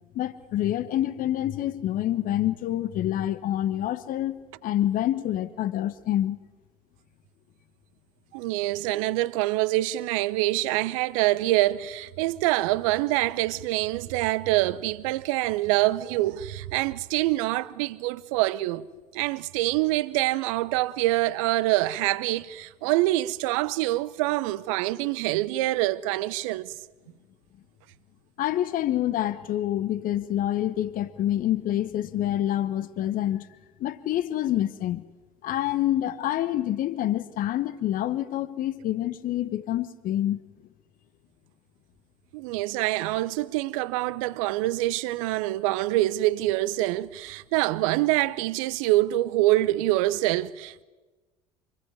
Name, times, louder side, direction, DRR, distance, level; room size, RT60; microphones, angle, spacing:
voice 1, 0.1-6.4 28.4-33.5 33.8-35.0 35.4-40.4, left 12 dB, 50° left, 1.3 m, -27 dB
voice 2, 8.3-18.8 19.1-26.7 42.3-50.8, right 17 dB, 65° right, 0.9 m, -25 dB
27.0 x 21.0 x 9.7 m
figure-of-eight pair, 65°, 19 cm